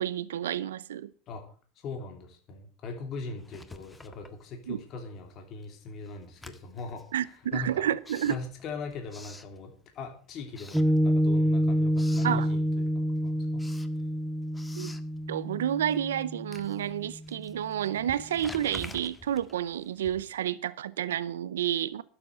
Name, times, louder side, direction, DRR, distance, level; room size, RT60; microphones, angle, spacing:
voice 1, 0.0-1.1 4.7-4.8 7.1-8.3 12.2-12.5 14.8-14.9 15.3-22.0, right 10 dB, 85° right, 0.6 m, -30 dB
voice 2, 1.7-7.8 8.3-13.7, left 4 dB, 50° left, 3.1 m, -40 dB
Writing, 3.4-5.0 5.3-10.1 10.5-11.5 11.7-12.4 12.8-20.5, left 2 dB, 15° left, 1.6 m, -49 dB
Piano, 10.7-17.4, equal, ahead, 0.5 m, -28 dB
12.0 x 7.9 x 7.8 m
hypercardioid pair, 90°, 0 cm